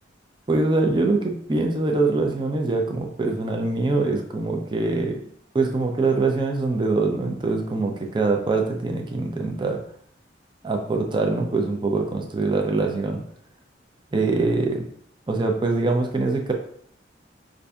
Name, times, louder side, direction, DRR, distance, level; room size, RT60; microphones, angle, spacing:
voice 1, 0.5-5.2 5.5-9.8 10.6-13.2 14.1-14.9 15.3-16.5, right 3 dB, 25° right, 2 dB, 0.5 m, -23 dB
5.4 x 2.6 x 2.3 m, 0.64 s
head